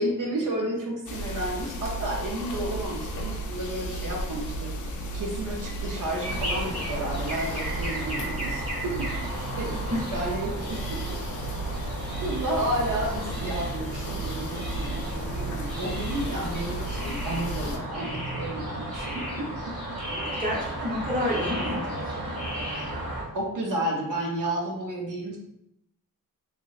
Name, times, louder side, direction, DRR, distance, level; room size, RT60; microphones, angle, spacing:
voice 1, 0.0-4.7 5.1-9.1 9.5-11.0 12.2-19.5 20.0-20.4 23.3-25.4, right 1 dB, 65° right, -2 dB, 0.6 m, -32 dB
sound 1, 1.1-17.8, right 1 dB, 60° left, 0.4 m, -34 dB
sound 2, 6.2-23.2, right 1 dB, 45° right, 1.2 m, -34 dB
voice 2, 20.2-22.3, left 1 dB, 25° right, -4 dB, 0.8 m, -30 dB
2.9 x 2.9 x 2.3 m, 0.83 s
wide cardioid pair, 135°, 34 cm